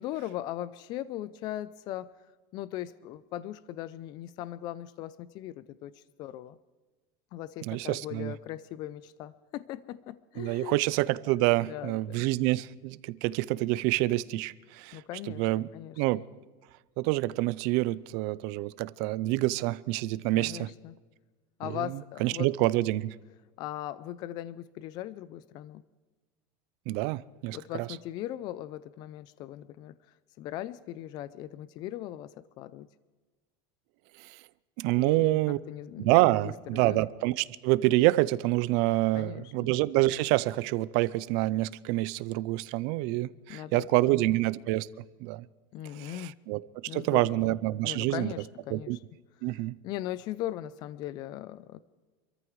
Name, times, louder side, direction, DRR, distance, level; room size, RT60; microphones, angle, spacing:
voice 1, 0.0-2.2 2.5-6.6 7.3-10.8 11.6-12.2 14.9-16.2 20.3-21.0 21.6-22.5 23.6-25.8 27.5-30.0 30.4-32.9 35.0-36.1 36.4-37.0 39.1-39.7 43.5-44.4 45.7-46.4 46.9-47.6 47.8-49.0 49.5-51.8, left 13 dB, 40° left, 16 dB, 0.4 m, -39 dB
voice 2, 7.6-8.3 10.4-15.0 15.4-15.7 16.0-16.2 17.0-20.7 22.2-23.1 26.9-27.9 34.2-34.4 34.8-35.6 36.0-44.9 45.2-45.4 45.9-46.6 46.9-48.3 48.7-49.0 49.4-49.8, right 18 dB, 55° right, 18 dB, 0.5 m, -27 dB
26.5 x 14.0 x 3.2 m, 1.3 s
supercardioid pair, 160°, 12 cm